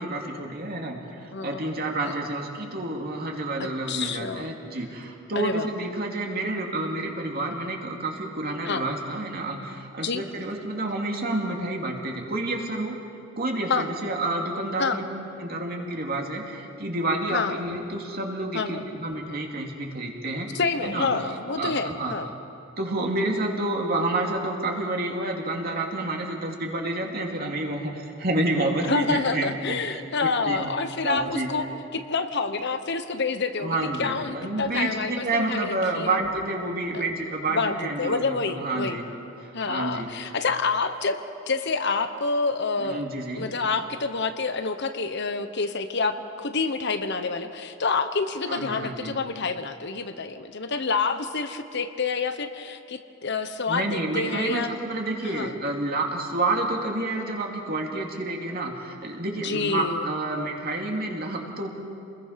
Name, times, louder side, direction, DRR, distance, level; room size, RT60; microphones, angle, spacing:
voice 1, 0.0-12.9 13.4-15.0 15.4-21.1 21.5-22.1 22.8-30.0 30.4-30.7 31.0-31.5 33.6-39.0 39.4-40.1 42.8-43.5 48.5-49.2 53.7-61.7, right 2 dB, 50° right, 0 dB, 2.8 m, -29 dB
voice 2, 1.3-1.7 2.1-2.2 3.6-4.6 5.3-5.7 8.6-8.9 10.0-10.2 13.7-13.9 14.8-15.0 17.3-17.6 18.5-18.8 20.5-22.3 28.8-36.2 36.9-37.1 37.5-39.0 39.5-41.2 41.4-43.0 43.3-54.7 55.2-55.5 59.4-60.1, left 4 dB, 60° left, 9 dB, 1.1 m, -28 dB
28.5 x 21.0 x 5.8 m, 2.7 s
head